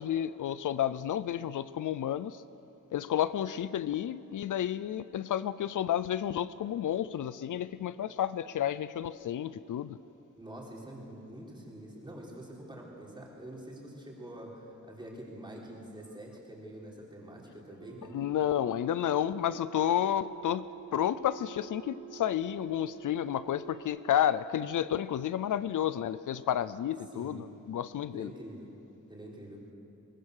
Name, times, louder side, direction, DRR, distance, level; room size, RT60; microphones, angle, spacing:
voice 1, 0.0-2.4 2.9-10.0 18.1-20.7 20.9-28.3, left 10 dB, 75° left, 15 dB, 0.6 m, -31 dB
voice 2, 10.4-18.2 27.1-27.5 28.1-28.8 29.1-29.7, right 1 dB, 15° right, -3 dB, 3.8 m, -46 dB
sound 1, 17.8-23.8, right 16 dB, 85° right, 3.0 m, -49 dB
23.0 x 21.0 x 6.6 m, 2.8 s
wide cardioid pair, 175°, 31 cm